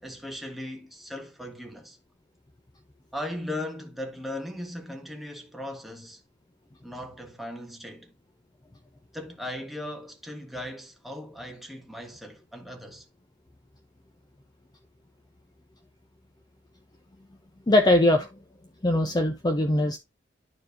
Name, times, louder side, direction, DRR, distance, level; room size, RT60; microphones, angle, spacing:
voice 1, 0.0-2.0 3.1-6.2 6.8-8.1 9.1-13.1, left 1 dB, ahead, 1.3 m, -38 dB
voice 2, 17.7-18.4 18.8-20.0, left 1 dB, 20° left, 0.6 m, -21 dB
11.5 x 4.5 x 2.6 m
head